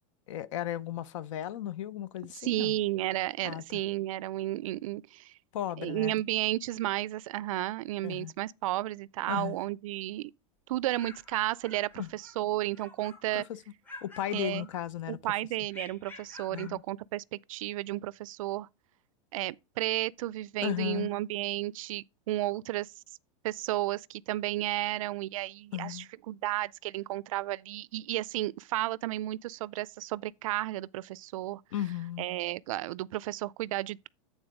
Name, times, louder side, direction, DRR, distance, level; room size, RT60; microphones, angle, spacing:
voice 1, 0.3-2.7 3.4-3.8 5.5-6.1 8.0-8.3 9.3-9.6 12.0-12.1 13.3-13.6 14.0-15.2 16.5-16.8 20.6-21.1 25.7-26.1 31.7-32.3, left 12 dB, 65° left, 0.6 m, -35 dB
voice 2, 2.3-5.3 5.8-10.3 10.7-13.4 14.3-14.7 15.1-18.7 19.3-22.9 23.4-31.6 32.2-34.1, right 15 dB, 75° right, 0.4 m, -33 dB
sound 1, 10.7-12.4 12.7-13.5 13.8-15.1 15.7-16.8, left 2 dB, 10° left, 0.8 m, -49 dB
8.9 x 3.9 x 4.9 m
supercardioid pair, 165°, 17 cm